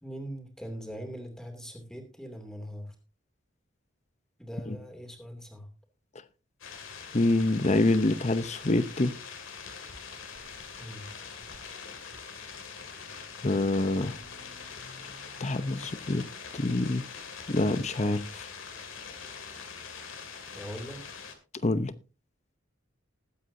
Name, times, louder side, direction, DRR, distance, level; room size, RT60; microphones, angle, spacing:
voice 1, 0.0-2.9 4.4-5.7 10.8-11.1 20.5-21.0, equal, 5° left, 2.7 m, -41 dB
sound 1, 6.6-21.3, left 5 dB, 80° left, 2.4 m, -43 dB
voice 2, 7.1-9.2 13.4-14.2 15.4-16.3 16.5-17.1 17.5-18.5 21.6-21.9, left 2 dB, 35° left, 0.7 m, -26 dB
20.5 x 8.4 x 2.7 m
head